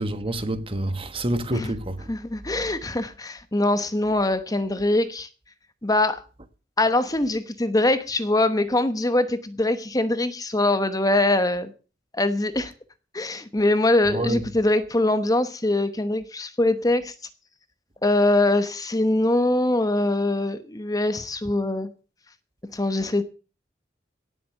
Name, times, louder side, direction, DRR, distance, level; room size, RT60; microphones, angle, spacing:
voice 1, 0.0-2.1 14.1-14.4 23.0-23.1, right 1 dB, 30° right, 1.4 m, -27 dB
voice 2, 2.1-5.3 5.8-6.2 6.8-11.7 12.2-12.7 13.1-17.1 18.0-21.9 22.7-23.2, left 2 dB, 20° left, 1.0 m, -23 dB
17.5 x 7.7 x 6.6 m
head